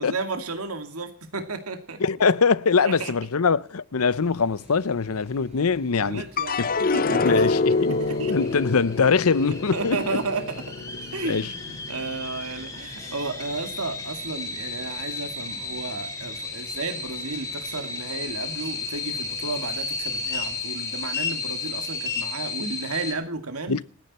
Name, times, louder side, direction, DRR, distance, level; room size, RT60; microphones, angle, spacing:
voice 1, 0.0-2.0 2.8-3.1 6.0-7.5 7.8-8.9 9.5-10.7 11.1-23.8, right 3 dB, 75° right, 2.3 m, -33 dB
voice 2, 2.0-6.2 6.6-6.7 7.2-8.0 8.3-10.0 11.2-11.5 23.7-23.8, left 5 dB, 75° left, 0.7 m, -22 dB
sound 1, 4.0-20.7, right 1 dB, 30° right, 4.8 m, -50 dB
sound 2, 6.4-12.8 13.2-13.9, left 3 dB, 40° left, 0.7 m, -27 dB
sound 3, 6.8-23.1, left 3 dB, 15° left, 3.2 m, -34 dB
28.0 x 10.0 x 4.3 m
head